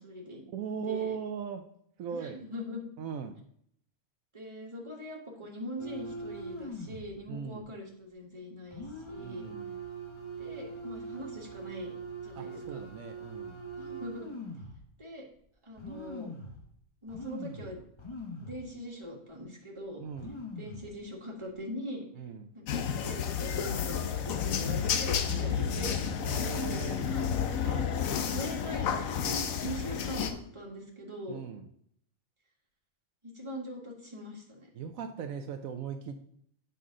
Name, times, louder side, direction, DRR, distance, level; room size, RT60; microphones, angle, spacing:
voice 1, 0.0-0.4 0.8-1.2 2.1-2.8 4.3-9.5 10.4-11.9 12.2-12.8 13.8-14.3 15.0-15.2 15.6-16.3 17.0-17.8 18.4-20.0 20.5-22.0 22.5-26.0 26.7-31.4 33.2-34.7, equal, 20° right, -2 dB, 1.7 m, -42 dB
voice 2, 0.5-1.6 2.0-2.4 3.0-3.4 7.3-7.7 9.2-9.8 12.3-13.6 20.0-20.4 22.2-22.5 24.6-24.9 25.3-25.8 26.2-27.1 27.6-27.9 31.3-31.7 34.7-36.2, right 7 dB, 75° right, 6 dB, 1.0 m, -39 dB
sound 1, 5.8-7.1 7.5-7.6 8.7-14.8 15.4-15.5 15.8-16.6 17.1-18.7 19.0-19.1 19.8-19.9 20.1-20.9 21.4-21.6, right 2 dB, 25° left, 1.0 m, -42 dB
sound 2, 22.7-30.3, left 7 dB, 75° left, 1.1 m, -31 dB
7.9 x 5.7 x 3.7 m, 0.66 s
omnidirectional pair, 1.5 m